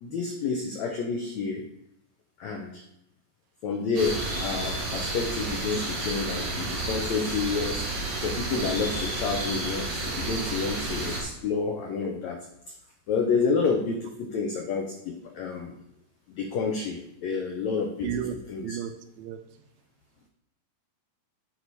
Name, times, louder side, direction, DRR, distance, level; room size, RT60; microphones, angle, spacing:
voice 1, 0.0-1.6 2.4-2.8 3.6-7.9 8.2-12.4 13.1-15.7 16.3-18.1 18.5-18.8, left 5 dB, 90° left, 1 dB, 1.5 m, -29 dB
sound 1, 3.9-11.2, right 2 dB, 65° right, 4.3 m, -31 dB
voice 2, 18.0-18.4 18.6-19.4, right 11 dB, 80° right, 8 dB, 2.3 m, -34 dB
9.9 x 4.8 x 4.1 m, 0.78 s
omnidirectional pair, 4.4 m